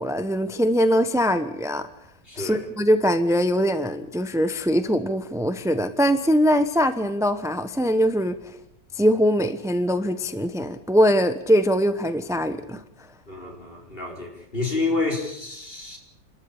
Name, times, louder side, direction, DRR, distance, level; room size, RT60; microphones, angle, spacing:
voice 1, 0.0-1.9 2.4-8.3 8.9-12.8, equal, 5° right, 10 dB, 0.5 m, -22 dB
voice 2, 2.3-2.6 13.3-16.0, left 3 dB, 30° left, 1 dB, 4.8 m, -29 dB
29.0 x 13.5 x 8.7 m, 0.80 s
omnidirectional pair, 2.0 m